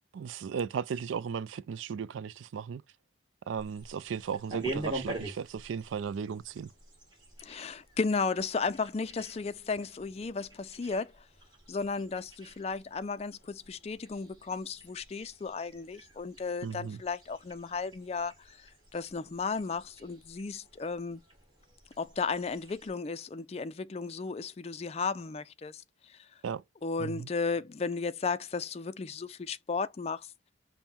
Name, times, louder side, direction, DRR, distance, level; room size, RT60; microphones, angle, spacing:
voice 1, 0.1-2.8 3.5-6.7 16.6-17.0 26.4-26.6 27.0-27.3, right 6 dB, 75° right, 0.3 m, -36 dB
sound 1, 3.6-22.9, right 1 dB, 25° right, 1.8 m, -46 dB
voice 2, 7.4-11.1 11.7-21.2 22.0-25.8 26.1-26.2 26.8-30.3, left 4 dB, 30° left, 0.3 m, -34 dB
5.4 x 2.1 x 4.3 m
head